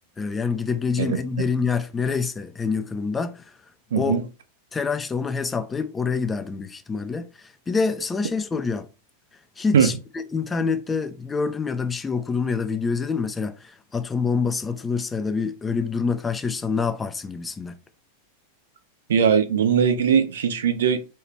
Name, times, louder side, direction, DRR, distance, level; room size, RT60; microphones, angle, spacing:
voice 1, 0.2-3.5 4.0-4.2 4.7-8.9 9.6-9.9 10.3-17.8, left 5 dB, 15° left, 0.4 m, -26 dB
voice 2, 3.9-4.2 9.7-9.9 19.1-21.1, right 7 dB, 60° right, 0.5 m, -20 dB
3.2 x 2.3 x 3.1 m
figure-of-eight pair, 90°, 0 cm